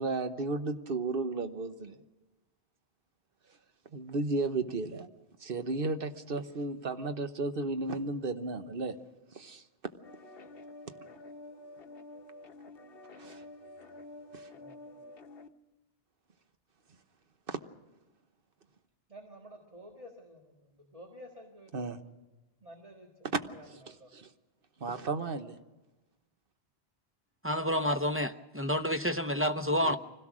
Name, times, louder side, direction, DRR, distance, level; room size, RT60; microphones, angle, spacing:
voice 1, 0.0-2.0 3.9-5.1 5.4-9.0 9.3-9.6 13.2-13.4 14.3-14.5 17.5-17.6 21.7-22.0 23.7-23.8 24.1-24.3 24.8-25.6 29.7-30.0, right 3 dB, 55° right, 9 dB, 1.2 m, -34 dB
sound 1, 10.0-15.5, left 2 dB, 60° left, 1.0 m, -49 dB
voice 2, 14.5-15.1 19.1-21.9 22.6-23.3 23.5-24.1, equal, 30° right, 1 dB, 1.9 m, -52 dB
voice 3, 27.4-30.0, equal, 15° right, 8 dB, 0.5 m, -29 dB
25.0 x 17.0 x 6.2 m, 1.1 s
omnidirectional pair, 1.1 m